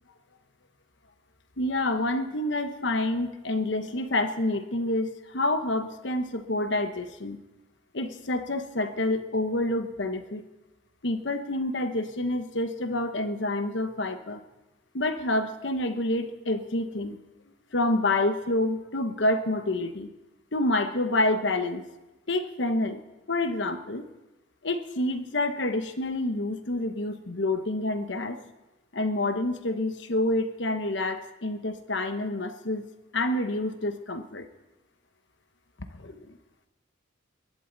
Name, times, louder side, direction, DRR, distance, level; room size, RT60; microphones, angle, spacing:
voice 1, 1.6-7.4 7.9-10.4 11.0-14.4 14.9-17.2 17.7-20.1 20.5-21.8 22.3-23.0 23.3-24.1 24.6-28.4 28.9-32.8 33.1-34.5 35.8-36.3, left 2 dB, 65° left, 8 dB, 1.1 m, -28 dB
21.5 x 11.5 x 4.0 m, 1.0 s
head